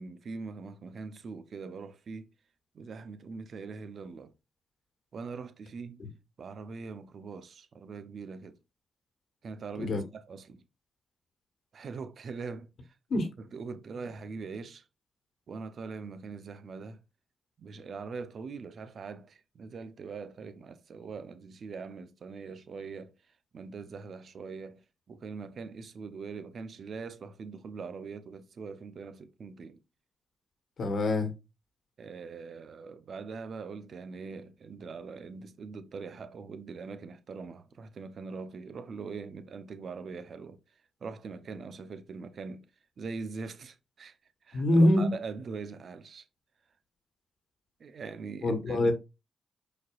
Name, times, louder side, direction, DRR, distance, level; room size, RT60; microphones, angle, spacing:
voice 1, 0.0-2.3 2.7-4.3 5.1-6.0 6.4-8.6 9.4-10.6 11.7-12.7 13.4-14.8 15.5-17.0 17.6-23.1 23.5-24.8 25.1-29.8 32.0-40.6 41.0-42.7 43.0-44.2 44.4-46.2 47.8-48.9, right 4 dB, 65° right, 0.7 m, -42 dB
voice 2, 9.7-10.0 13.1-13.3 30.8-31.3 44.5-45.1 48.4-48.9, left 1 dB, 65° left, 1.4 m, -25 dB
5.0 x 4.3 x 2.4 m
supercardioid pair, 45°, 0 cm